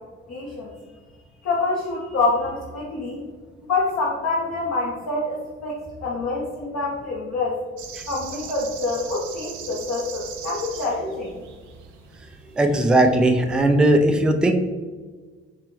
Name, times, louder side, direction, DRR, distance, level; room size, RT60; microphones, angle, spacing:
voice 1, 0.3-0.7 1.4-3.2 3.7-7.6 8.1-11.4, left 3 dB, 50° left, -5 dB, 1.0 m, -26 dB
sound 1, 7.8-13.2, right 7 dB, 55° right, 0.7 m, -40 dB
voice 2, 12.6-14.5, right 1 dB, 5° right, 5 dB, 0.3 m, -18 dB
4.2 x 3.3 x 3.1 m, 1.4 s
figure-of-eight pair, 45°, 35 cm